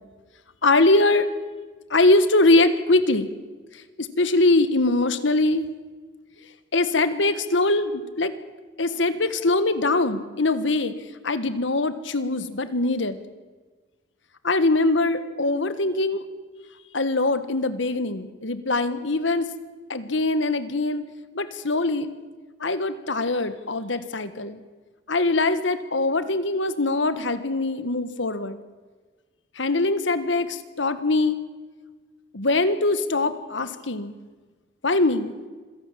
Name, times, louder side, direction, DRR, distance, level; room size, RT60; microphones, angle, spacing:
voice 1, 0.6-1.3 1.9-3.3 3.7-5.7 6.7-8.3 8.8-10.9 11.2-13.2 14.4-16.2 16.9-19.5 19.9-21.0 21.3-22.1 22.6-24.6 25.1-28.6 29.5-31.4 32.3-34.1 34.8-35.3, left 2 dB, 80° left, 12 dB, 1.6 m, -22 dB
26.0 x 17.0 x 7.5 m, 1.4 s
head